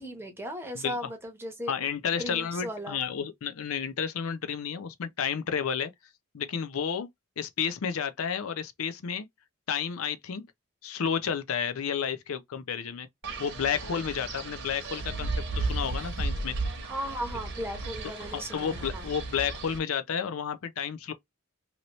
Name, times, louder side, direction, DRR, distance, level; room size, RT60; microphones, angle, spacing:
voice 1, 0.0-1.7 2.1-3.0 16.8-19.1, equal, 10° right, 0.9 m, -37 dB
voice 2, 1.7-5.9 6.3-7.1 7.4-9.3 9.7-10.5 10.8-13.1 13.4-16.5 18.3-21.1, left 7 dB, 70° left, 0.5 m, -31 dB
Wind, 13.2-19.8, right 3 dB, 55° right, 1.0 m, -34 dB
2.9 x 2.7 x 3.0 m
head